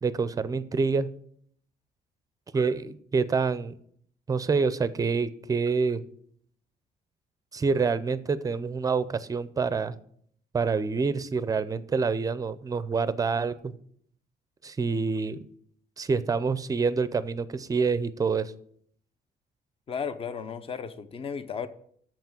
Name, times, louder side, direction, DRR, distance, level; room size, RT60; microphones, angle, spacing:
voice 1, 0.0-1.1 2.5-3.7 4.3-6.0 7.5-10.0 10.5-13.7 14.6-15.4 16.0-18.5, right 4 dB, 20° right, 14 dB, 0.5 m, -27 dB
voice 2, 19.9-21.7, left 6 dB, 35° left, 13 dB, 0.6 m, -34 dB
7.1 x 5.9 x 7.4 m, 0.64 s
cardioid pair, 150°, 17 cm